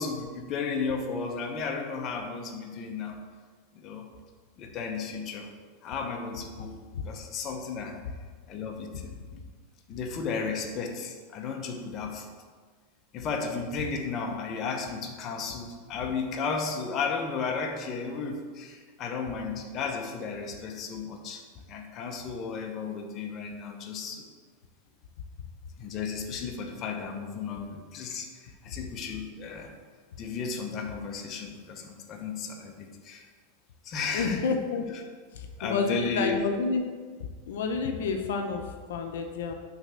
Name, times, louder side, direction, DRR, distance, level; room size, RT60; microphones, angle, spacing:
voice 1, 0.0-3.2 3.7-4.1 4.6-5.5 5.8-6.7 7.0-8.0 8.5-9.4 9.9-12.3 13.1-21.4 21.7-24.3 25.8-29.7 30.2-33.2 33.8-34.5 35.6-36.7, left 5 dB, 35° left, 3 dB, 0.8 m, -34 dB
voice 2, 34.1-35.0 35.3-36.8 37.5-39.5, left 4 dB, 80° left, 4 dB, 0.6 m, -29 dB
6.1 x 3.3 x 5.5 m, 1.5 s
supercardioid pair, 140°, 0 cm